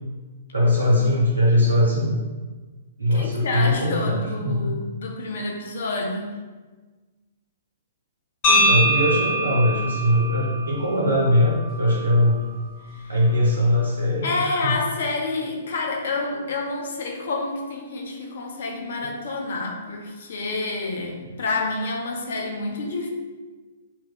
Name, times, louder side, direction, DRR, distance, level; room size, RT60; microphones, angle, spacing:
voice 1, 0.5-2.2 3.0-4.8 8.5-12.4 13.1-14.7 19.0-19.1, left 1 dB, 80° right, -5 dB, 0.8 m, -21 dB
voice 2, 3.1-6.4 12.9-13.2 14.2-23.1, left 3 dB, 55° left, 2 dB, 0.7 m, -28 dB
sound 1, 8.4-12.5, equal, 35° left, 1.4 m, -24 dB
6.9 x 2.9 x 2.3 m, 1.3 s
figure-of-eight pair, 115°, 0 cm